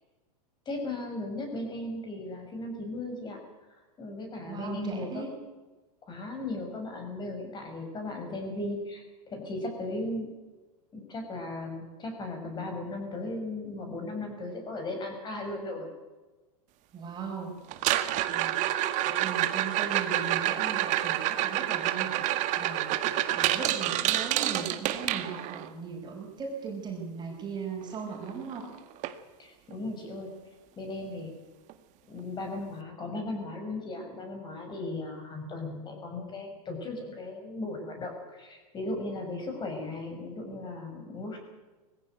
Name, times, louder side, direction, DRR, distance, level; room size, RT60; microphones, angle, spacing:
voice 1, 0.7-3.4 4.0-5.2 6.0-10.3 10.9-15.9 29.4-30.3 30.8-31.3 32.1-41.4, left 2 dB, 20° left, 4 dB, 6.3 m, -36 dB
voice 2, 4.5-5.3 16.9-17.6 18.3-18.6 19.1-28.7, right 5 dB, 20° right, 1 dB, 5.4 m, -38 dB
sound 1, 17.7-25.7 27.9-28.0 28.3-28.6 29.0-29.1 29.7-29.8 31.7-31.8, right 14 dB, 35° right, 1.7 m, -28 dB
20.5 x 15.5 x 9.3 m, 1.2 s
supercardioid pair, 135°, 20 cm